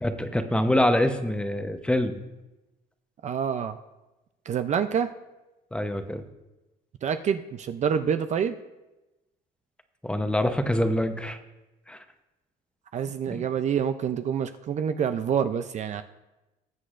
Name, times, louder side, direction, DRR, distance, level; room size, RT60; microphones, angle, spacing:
voice 1, 0.0-2.2 5.7-6.2 10.0-11.4 11.9-12.0 13.3-13.4, left 1 dB, 5° left, 7 dB, 0.8 m, -25 dB
voice 2, 3.2-3.8 4.5-5.1 7.0-8.6 12.9-16.0, right 7 dB, 45° right, 9 dB, 0.5 m, -27 dB
20.0 x 7.8 x 2.5 m, 1.0 s
cardioid pair, 110°, 17 cm